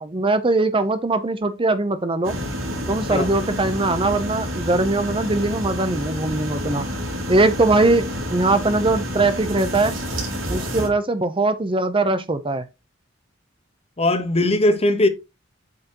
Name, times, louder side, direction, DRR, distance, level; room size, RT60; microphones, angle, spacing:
voice 1, 0.0-2.3 2.9-6.9 7.3-9.9 10.5-12.7, right 2 dB, 25° right, 0.7 m, -21 dB
sound 1, 2.2-10.9, equal, 85° right, 3.2 m, -29 dB
voice 2, 10.5-10.9 14.0-15.1, left 1 dB, 30° left, 1.2 m, -20 dB
7.7 x 5.6 x 3.0 m
head